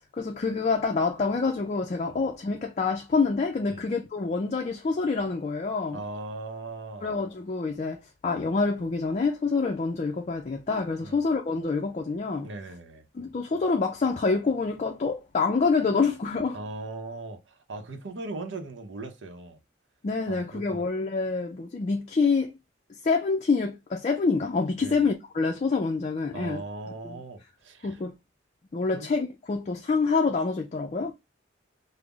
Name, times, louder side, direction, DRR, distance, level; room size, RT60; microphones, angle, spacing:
voice 1, 0.1-6.0 7.0-8.0 8.2-12.5 13.1-16.6 20.0-22.5 23.0-26.6 27.0-27.2 27.8-28.1 28.7-31.1, left 4 dB, 40° left, 0.4 m, -26 dB
voice 2, 5.9-7.2 11.0-11.2 12.4-13.1 16.5-19.6 20.3-20.9 24.8-25.0 26.3-28.0 28.9-29.1, right 2 dB, 90° right, 0.7 m, -39 dB
5.2 x 2.0 x 2.3 m
head